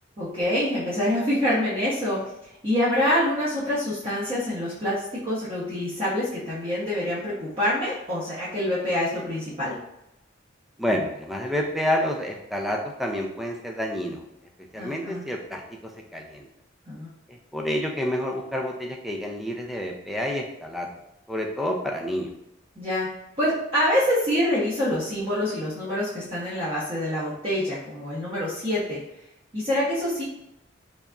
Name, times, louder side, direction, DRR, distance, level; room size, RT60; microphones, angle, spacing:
voice 1, 0.2-2.2 2.6-9.7 14.8-15.2 16.9-17.1 22.8-23.1 23.4-29.0 29.5-30.2, left 1 dB, 30° right, -10 dB, 0.9 m, -26 dB
voice 2, 10.8-14.2 14.7-16.5 17.3-20.9 21.3-22.3, equal, ahead, 1 dB, 0.4 m, -29 dB
4.0 x 3.4 x 2.4 m, 0.86 s
head